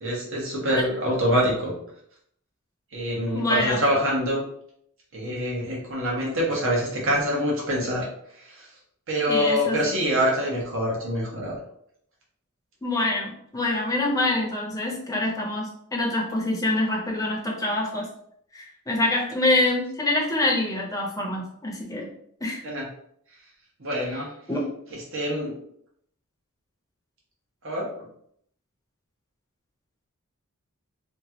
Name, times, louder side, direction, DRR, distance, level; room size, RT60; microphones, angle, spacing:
voice 1, 0.0-1.7 2.9-4.4 5.1-8.1 9.1-11.5 22.6-22.8 23.8-24.3 25.1-25.5 27.6-27.8, equal, 65° right, -3 dB, 1.1 m, -25 dB
voice 2, 3.3-3.8 9.3-9.8 12.8-18.1 18.5-22.1 22.4-22.6 24.0-24.2 24.5-24.6, left 2 dB, 15° left, -2 dB, 0.7 m, -25 dB
2.9 x 2.4 x 2.8 m, 0.68 s
head